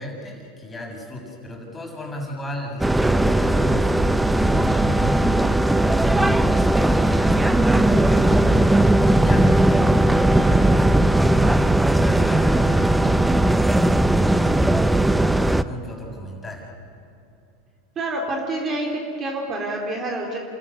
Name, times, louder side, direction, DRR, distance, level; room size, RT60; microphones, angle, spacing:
voice 1, 0.0-3.9 4.4-8.5 9.0-16.7, left 1 dB, 15° left, 0 dB, 6.8 m, -35 dB
sound 1, 2.8-15.6, right 1 dB, 5° right, 0.7 m, -18 dB
voice 2, 18.0-20.4, right 2 dB, 35° right, 0 dB, 4.1 m, -27 dB
28.0 x 14.0 x 10.0 m, 2.7 s
hypercardioid pair, 105°, 0 cm